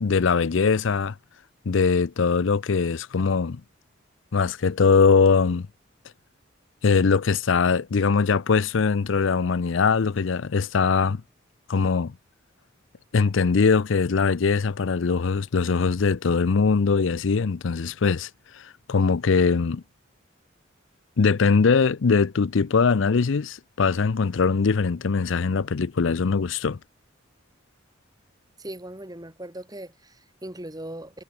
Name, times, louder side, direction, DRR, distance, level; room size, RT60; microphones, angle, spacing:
voice 1, 0.0-1.2 1.7-3.6 4.3-5.7 6.8-11.2 11.7-12.2 13.1-19.8 21.2-26.8, left 5 dB, 70° left, 0.5 m, -21 dB
voice 2, 28.6-31.2, right 1 dB, 20° right, 2.7 m, -39 dB
head